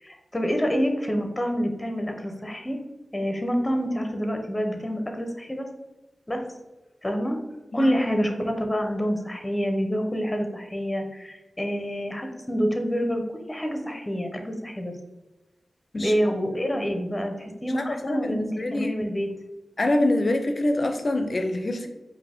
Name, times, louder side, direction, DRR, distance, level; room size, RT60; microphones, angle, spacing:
voice 1, 0.0-2.8 3.1-5.7 6.3-6.5 7.0-7.4 7.7-15.0 15.9-19.3, equal, 20° left, 4 dB, 0.8 m, -27 dB
voice 2, 17.7-19.0 19.8-21.9, left 1 dB, 55° left, 6 dB, 0.6 m, -25 dB
5.0 x 2.7 x 3.5 m, 1.0 s
cardioid pair, 50°, 0 cm